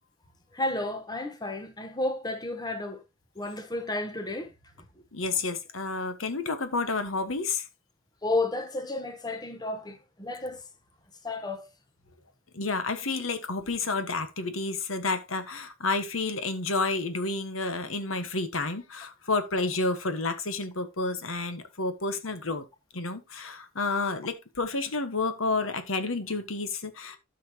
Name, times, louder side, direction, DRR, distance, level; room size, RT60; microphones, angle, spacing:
voice 1, 0.5-3.0 3.4-4.5 8.2-10.6 11.2-11.7, left 2 dB, 20° left, 1.2 m, -32 dB
voice 2, 5.1-7.7 12.5-22.6 22.9-27.2, left 3 dB, 85° left, 1.3 m, -30 dB
13.0 x 5.6 x 2.9 m
head